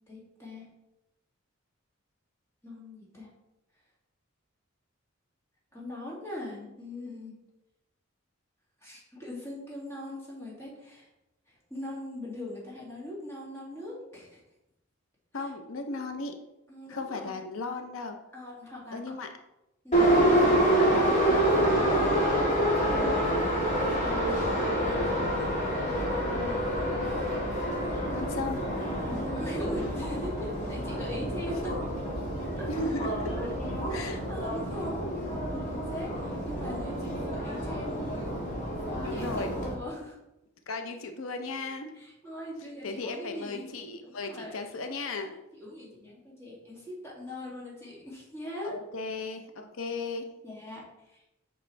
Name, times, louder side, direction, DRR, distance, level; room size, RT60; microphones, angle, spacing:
voice 1, 0.1-0.7 2.6-3.3 5.7-7.3 8.8-11.1 11.5-14.4 15.3-15.5 16.7-17.4 18.3-19.1 19.8-20.6 22.8-26.7 29.1-31.8 32.6-32.7 33.9-35.1 35.5-38.4 38.9-40.2 41.9-43.7 44.0-44.6 45.5-48.7 50.4-51.3, left 1 dB, 15° left, -6 dB, 2.3 m, -41 dB
voice 2, 15.3-16.3 16.9-18.2 18.9-19.3 20.2-21.4 21.7-22.3 28.1-28.6 32.7-33.3 33.9-34.2 39.0-39.5 40.7-41.9 42.8-45.3 48.6-50.3, left 3 dB, 90° left, 6 dB, 0.7 m, -36 dB
Subway metro underground, 19.9-39.7, right 1 dB, 40° left, 1.9 m, -28 dB
7.8 x 5.5 x 3.3 m, 0.91 s
head